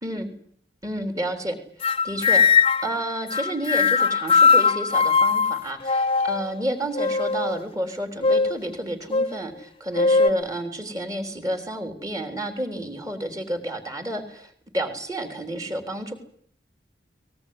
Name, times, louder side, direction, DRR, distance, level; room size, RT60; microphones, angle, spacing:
voice 1, 0.8-1.6 2.0-2.4 2.8-16.2, right 1 dB, 20° right, 7 dB, 3.6 m, -30 dB
sound 1, 1.8-2.9 3.3-6.5 6.9-7.6 8.2-8.6 9.1-9.3 10.0-10.3, left 5 dB, 30° left, 1.3 m, -20 dB
23.5 x 19.5 x 9.6 m, 0.63 s
head